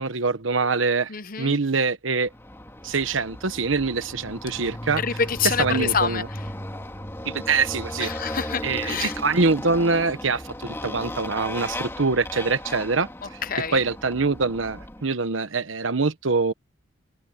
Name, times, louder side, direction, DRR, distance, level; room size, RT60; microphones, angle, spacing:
voice 1, 0.0-1.1 1.4-2.3 2.8-5.0 5.6-6.3 7.2-8.1 8.6-13.4 13.7-16.5, right 4 dB, 85° right, 1.1 m, -24 dB
voice 2, 1.1-1.6 5.0-6.2 8.0-9.2 13.4-13.8, left 6 dB, 45° left, 1.0 m, -26 dB
Motorcycle, 2.3-15.0, left 1 dB, 15° left, 2.5 m, -35 dB
head